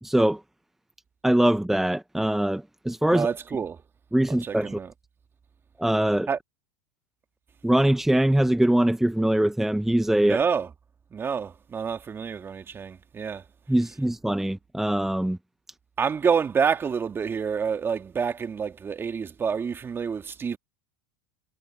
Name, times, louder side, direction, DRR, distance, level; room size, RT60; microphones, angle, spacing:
voice 1, 0.0-0.4 1.2-3.3 4.1-4.8 5.8-6.3 7.6-10.4 13.7-15.4, right 1 dB, 5° right, 0.9 m, -22 dB
voice 2, 3.1-3.8 4.3-4.9 6.3-6.4 10.2-10.7 11.1-13.4 16.0-20.6, right 6 dB, 25° right, 1.9 m, -28 dB
hypercardioid pair, 95°, 9 cm